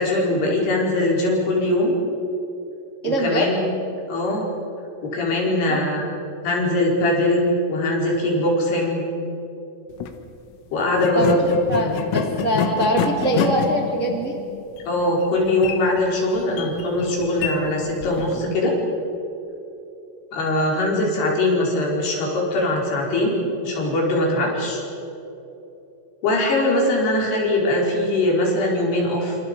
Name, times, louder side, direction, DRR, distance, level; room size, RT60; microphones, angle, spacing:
voice 1, 0.0-1.9 3.1-3.7 4.1-4.5 5.0-6.0 6.4-9.0 10.7-11.4 11.8-11.9 14.9-18.7 20.3-24.8 26.2-29.4, left 1 dB, 55° left, -2 dB, 6.5 m, -21 dB
voice 2, 3.0-3.5 5.7-5.8 11.1-11.3 11.7-11.9 12.1-14.4, right 1 dB, 40° right, 0 dB, 1.0 m, -22 dB
sound 1, 9.9-10.2 10.9-18.5, left 8 dB, 80° left, 3.8 m, -28 dB
27.5 x 27.0 x 5.4 m, 2.9 s
omnidirectional pair, 5.6 m